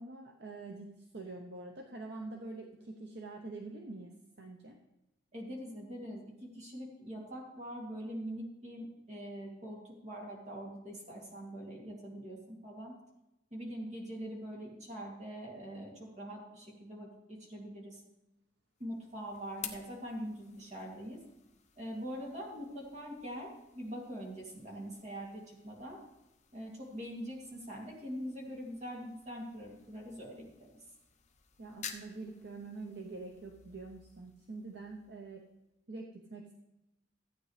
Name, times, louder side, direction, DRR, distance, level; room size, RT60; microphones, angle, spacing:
voice 1, 0.0-4.8 31.6-35.4 35.9-36.5, right 3 dB, 60° right, 1 dB, 0.8 m, -45 dB
voice 2, 5.3-12.9 13.5-18.0 18.8-21.2 21.8-26.0 26.5-30.7, equal, 40° right, -2 dB, 2.5 m, -43 dB
sound 1, 18.8-35.7, left 8 dB, 40° left, 0.8 m, -53 dB
14.0 x 8.7 x 3.3 m, 0.93 s
head